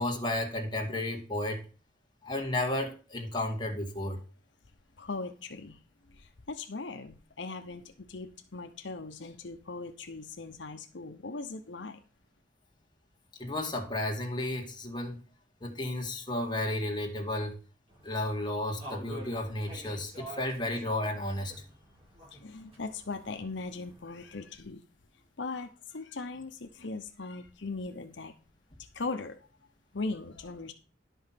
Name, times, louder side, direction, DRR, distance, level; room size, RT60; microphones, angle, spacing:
voice 1, 0.0-1.6 2.2-4.2 13.4-15.2 15.6-17.6 18.0-21.5, left 1 dB, 25° left, 2.0 m, -33 dB
voice 2, 5.0-5.8 6.1-12.0 22.3-24.8 25.4-28.3 28.8-29.5 29.9-30.7, left 3 dB, 80° left, 0.9 m, -39 dB
sound 1, 17.9-24.4, right 1 dB, 35° right, 7.0 m, -49 dB
11.0 x 5.5 x 5.8 m
head